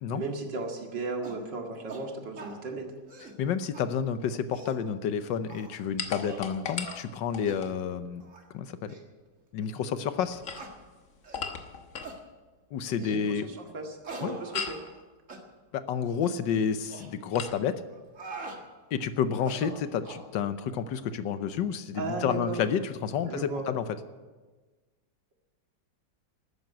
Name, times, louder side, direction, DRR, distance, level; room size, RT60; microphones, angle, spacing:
voice 1, 0.1-2.9 13.0-13.2 13.5-14.8 21.9-22.6 23.2-23.7, right 3 dB, 80° right, 2 dB, 2.7 m, -35 dB
sound 1, 1.2-1.4 1.9-2.0 2.4-2.6 3.0-3.4 3.7-3.8 4.3-4.8 5.5-5.8 6.2-6.5 6.8-7.0 7.4-7.6 8.2-8.4 8.9-9.0 9.6-9.7 10.5-10.7 11.2-11.5 12.0-12.2 13.0-13.2 14.0-15.0 15.3-15.4 16.1-16.3 16.9-17.1 17.9-18.6 19.3-20.3, right 3 dB, 45° right, 2.1 m, -43 dB
voice 2, 3.4-8.2 8.5-8.9 9.5-10.4 12.7-13.6 14.2-14.4 15.7-17.8 18.9-23.9, left 7 dB, 90° left, 11 dB, 1.6 m, -30 dB
sound 2, 6.0-7.8 10.2-12.2 14.5-14.9 17.3-17.6, left 6 dB, 50° left, 1.5 m, -37 dB
13.5 x 9.8 x 9.4 m, 1.3 s
omnidirectional pair, 1.9 m